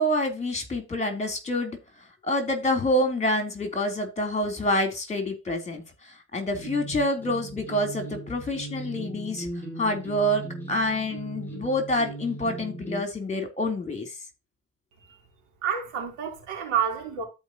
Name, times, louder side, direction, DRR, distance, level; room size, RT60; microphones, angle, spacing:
voice 1, 0.0-1.8 2.2-5.8 6.3-9.5 9.8-14.1, left 1 dB, 25° left, 3.6 m, -27 dB
sound 1, 6.5-13.0, right 2 dB, 5° left, 4.9 m, -38 dB
voice 2, 15.6-17.2, right 7 dB, 90° right, 3.8 m, -29 dB
13.5 x 5.1 x 3.0 m
cardioid pair, 90°, 29 cm